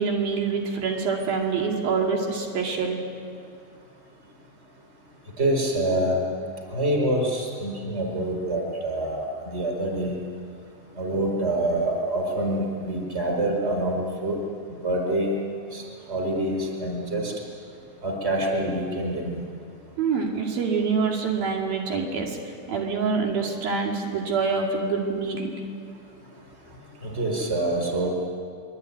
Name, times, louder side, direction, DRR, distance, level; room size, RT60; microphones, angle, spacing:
voice 1, 0.0-3.0 20.0-22.4 22.7-25.6, right 5 dB, 70° right, 0 dB, 4.2 m, -26 dB
voice 2, 5.4-6.3 6.7-10.1 11.0-14.4 14.8-15.3 15.7-17.3 18.0-19.4 27.0-28.1, right 1 dB, 15° right, 1 dB, 4.5 m, -26 dB
24.5 x 23.5 x 9.4 m, 2.3 s
omnidirectional pair, 4.4 m